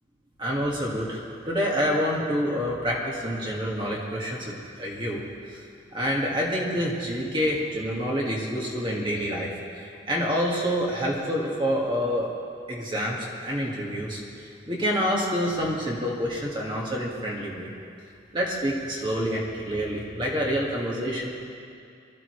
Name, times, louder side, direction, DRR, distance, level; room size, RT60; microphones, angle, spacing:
voice 1, 0.4-4.5 4.8-5.2 5.9-9.5 10.1-12.3 12.7-14.2 14.7-17.7 18.3-21.3, equal, 25° right, -3 dB, 1.8 m, -27 dB
23.5 x 13.5 x 3.2 m, 2.4 s
head